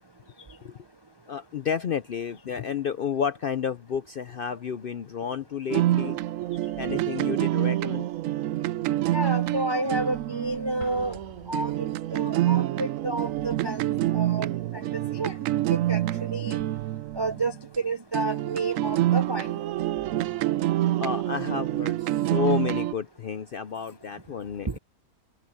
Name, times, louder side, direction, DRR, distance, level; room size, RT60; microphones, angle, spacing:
voice 1, 1.3-6.2 6.7-8.1 21.0-24.8, left 7 dB, 60° left, 0.6 m, -31 dB
sound 1, 5.7-17.8 18.1-22.9, right 14 dB, 70° right, 0.9 m, -27 dB
voice 2, 9.1-11.2 11.5-13.9 14.1-14.5 14.7-14.9 15.1-15.4 15.7-16.6 17.1-19.6 24.7-24.8, right 2 dB, 45° right, 0.3 m, -30 dB
Explosion, 10.8-12.4, left 2 dB, 35° left, 2.1 m, -47 dB
omnidirectional pair, 1.5 m